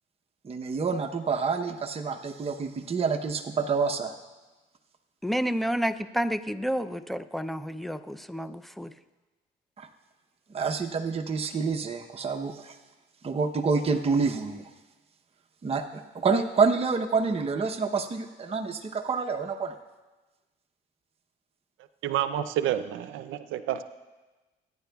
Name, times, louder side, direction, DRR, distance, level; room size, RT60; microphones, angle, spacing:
voice 1, 0.4-4.2 9.8-9.9 10.5-12.8 13.2-14.7 15.6-19.8, right 5 dB, 30° right, 3 dB, 0.8 m, -28 dB
voice 2, 5.2-8.9, equal, ahead, 11 dB, 0.4 m, -30 dB
voice 3, 22.0-23.8, right 11 dB, 85° right, 11 dB, 0.5 m, -29 dB
24.0 x 9.9 x 2.3 m, 1.2 s
cardioid pair, 90°, 20 cm